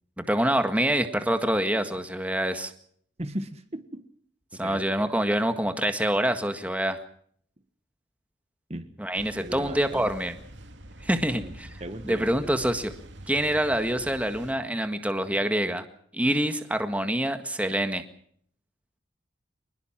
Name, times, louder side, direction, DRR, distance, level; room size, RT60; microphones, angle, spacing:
voice 1, 0.3-2.7 4.5-7.0 9.0-10.3 11.0-11.7 12.0-12.9 13.3-15.8 16.1-18.0, right 1 dB, 5° right, 7 dB, 1.7 m, -26 dB
voice 2, 3.2-4.0 4.5-4.9 8.7-8.9 9.4-10.1 11.3-11.5 11.8-12.3, right 1 dB, 35° right, 9 dB, 1.5 m, -37 dB
sound 1, 9.1-14.5, right 1 dB, 70° right, 2.5 m, -45 dB
26.5 x 20.5 x 6.0 m, 0.63 s
head